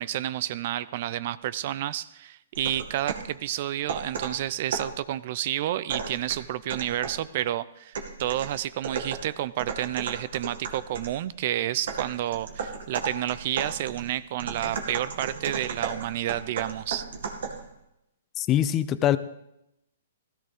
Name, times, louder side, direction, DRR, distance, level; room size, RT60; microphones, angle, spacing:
voice 1, 0.0-17.1, right 13 dB, 50° right, 17 dB, 0.5 m, -30 dB
sound 1, 2.5-3.3 3.9-5.0 5.9-7.3 7.9-11.2 11.9-17.7, right 5 dB, 65° right, 2.1 m, -35 dB
voice 2, 18.4-19.2, left 11 dB, 25° left, 15 dB, 0.6 m, -23 dB
16.0 x 14.0 x 3.6 m, 0.85 s
hypercardioid pair, 135°, 0 cm